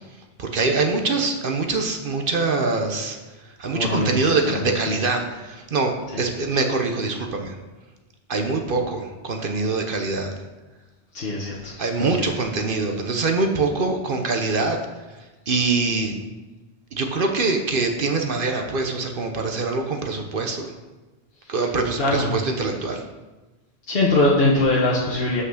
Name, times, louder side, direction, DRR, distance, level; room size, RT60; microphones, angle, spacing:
voice 1, 0.4-3.2 3.4-7.6 8.3-10.4 11.8-14.8 15.5-16.2 16.9-20.7 21.5-23.0, right 3 dB, 50° right, 4 dB, 0.9 m, -24 dB
voice 2, 3.7-5.0 6.1-6.2 11.1-12.2 22.0-22.3 23.9-25.4, left 2 dB, 55° left, -4 dB, 1.3 m, -22 dB
5.8 x 5.5 x 6.4 m, 1.2 s
omnidirectional pair, 1.2 m